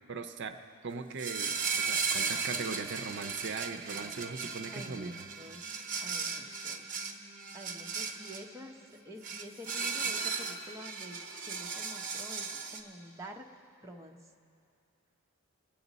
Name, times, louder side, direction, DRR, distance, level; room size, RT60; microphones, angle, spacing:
voice 1, 0.1-0.6 0.8-5.2, right 4 dB, 60° right, 7 dB, 0.6 m, -39 dB
sound 1, 1.2-8.5 9.2-12.8, right 5 dB, 40° right, 0.9 m, -36 dB
voice 2, 4.7-5.7 6.0-6.9 7.5-11.2 11.4-13.5 13.8-14.2, equal, 15° right, 0 dB, 0.8 m, -48 dB
25.5 x 8.5 x 4.0 m, 2.6 s
head